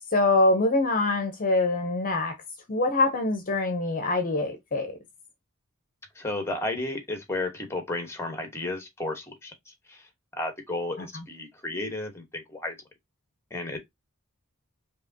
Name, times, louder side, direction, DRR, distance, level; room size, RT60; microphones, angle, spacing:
voice 1, 0.1-2.3 2.7-5.0 11.0-11.2, left 2 dB, 40° left, 0.7 m, -24 dB
voice 2, 6.1-10.1 10.3-12.8 13.5-13.8, left 2 dB, 10° left, 1.1 m, -33 dB
4.7 x 2.9 x 2.7 m
head